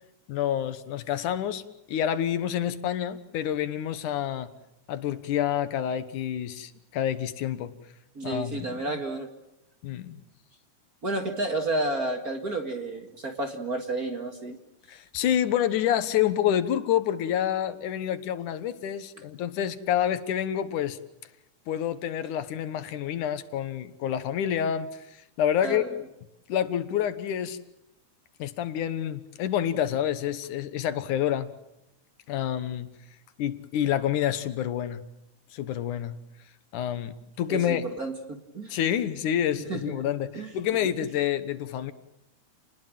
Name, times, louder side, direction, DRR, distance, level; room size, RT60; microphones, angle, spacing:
voice 1, 0.3-1.6 1.9-4.5 4.9-7.7 8.2-8.8 9.8-10.2 14.9-21.0 21.7-25.9 26.5-27.6 28.4-31.5 32.3-32.9 33.4-35.0 35.5-36.1 36.7-37.9 38.7-41.9, left 10 dB, 80° left, 13 dB, 2.7 m, -28 dB
voice 2, 8.2-9.3 11.0-14.6 25.6-26.0 37.5-38.8 39.7-40.5, right 2 dB, 35° right, 5 dB, 1.9 m, -31 dB
29.5 x 20.0 x 7.4 m, 0.89 s
omnidirectional pair, 3.6 m